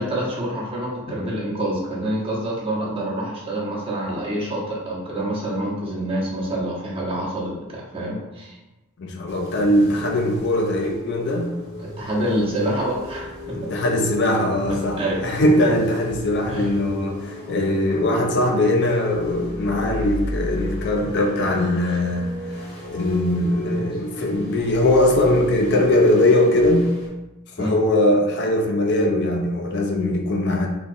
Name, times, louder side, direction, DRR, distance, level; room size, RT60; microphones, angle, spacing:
voice 1, 0.0-8.6 12.0-13.6 15.0-15.2 16.5-16.7 27.6-27.8, right 1 dB, 25° right, -4 dB, 0.8 m, -26 dB
voice 2, 9.0-11.6 13.5-22.4 22.9-26.9 27.6-30.7, left 1 dB, 55° left, 2 dB, 0.4 m, -20 dB
sound 1, 9.3-27.1, equal, 30° left, 1.0 m, -35 dB
3.8 x 2.9 x 2.5 m, 1.0 s
head